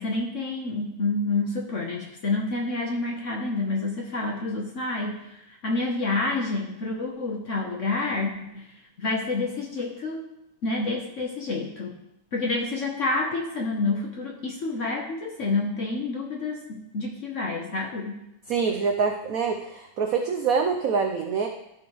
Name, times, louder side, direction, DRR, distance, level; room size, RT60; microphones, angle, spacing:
voice 1, 0.0-8.7 9.0-10.3 10.6-12.0 12.3-18.2, left 3 dB, 50° left, 0 dB, 0.9 m, -28 dB
voice 2, 18.5-21.5, right 5 dB, 80° right, 4 dB, 0.8 m, -25 dB
12.5 x 5.0 x 3.1 m, 0.85 s
omnidirectional pair, 2.2 m